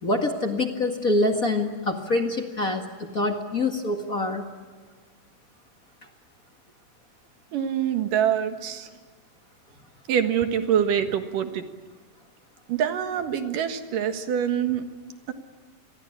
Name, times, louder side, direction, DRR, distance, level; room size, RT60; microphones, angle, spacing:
voice 1, 0.0-4.4, left 2 dB, 30° left, 3 dB, 1.7 m, -25 dB
voice 2, 7.5-8.9 10.1-11.6 12.7-14.8 15.3-15.4, right 9 dB, 70° right, 7 dB, 3.1 m, -25 dB
28.0 x 22.0 x 8.7 m, 1.5 s
omnidirectional pair, 4.0 m